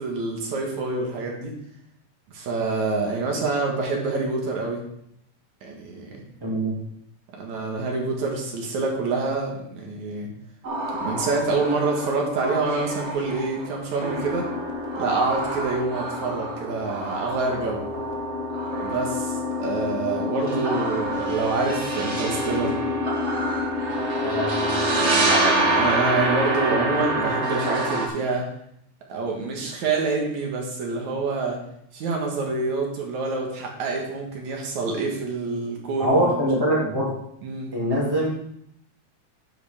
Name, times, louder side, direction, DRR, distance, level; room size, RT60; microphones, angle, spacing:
voice 1, 0.0-1.5 2.3-4.8 5.6-6.2 7.3-10.3 11.0-14.5 15.0-17.8 18.8-22.8 24.9-28.5 29.1-31.6 31.9-36.4 37.4-37.7, right 3 dB, 75° right, 0 dB, 2.9 m, -27 dB
voice 2, 6.4-6.8 24.2-24.9 36.0-37.1 37.7-38.3, equal, 10° right, -4 dB, 2.1 m, -23 dB
sound 1, 10.6-28.1, right 1 dB, 50° right, 0.8 m, -26 dB
9.7 x 8.1 x 3.6 m, 0.73 s
omnidirectional pair, 3.3 m